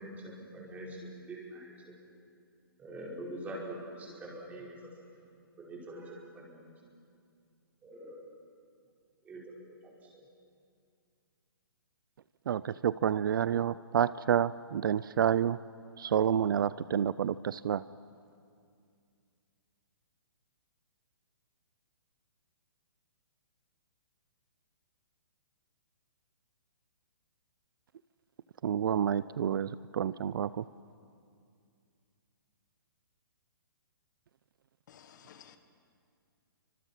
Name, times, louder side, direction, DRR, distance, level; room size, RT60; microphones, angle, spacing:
voice 1, 0.0-1.9 2.8-4.9 5.6-6.7 7.8-8.2 9.2-9.8 10.0-10.2, right 1 dB, 15° right, -3 dB, 4.9 m, -44 dB
voice 2, 12.5-15.6 16.0-17.8 28.6-30.6, right 9 dB, 60° right, 17 dB, 0.5 m, -29 dB
voice 3, 34.9-35.6, left 8 dB, 50° left, 8 dB, 1.5 m, -55 dB
29.0 x 25.0 x 5.7 m, 2.3 s
hypercardioid pair, 150°, 12 cm